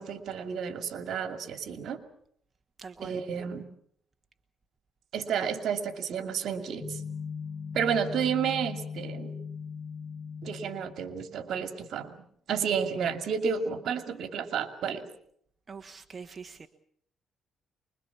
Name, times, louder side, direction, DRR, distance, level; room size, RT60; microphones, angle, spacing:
voice 1, 0.0-2.0 3.0-3.7 5.1-7.0 7.7-9.3 10.4-12.1 12.5-15.1, right 7 dB, 70° right, 8 dB, 2.4 m, -31 dB
voice 2, 2.8-3.2 15.7-16.7, right 5 dB, 35° right, 6 dB, 1.3 m, -44 dB
sound 1, 6.8-11.1, left 6 dB, 40° left, 1.6 m, -39 dB
24.5 x 22.0 x 7.1 m, 0.68 s
cardioid pair, 90°, 0 cm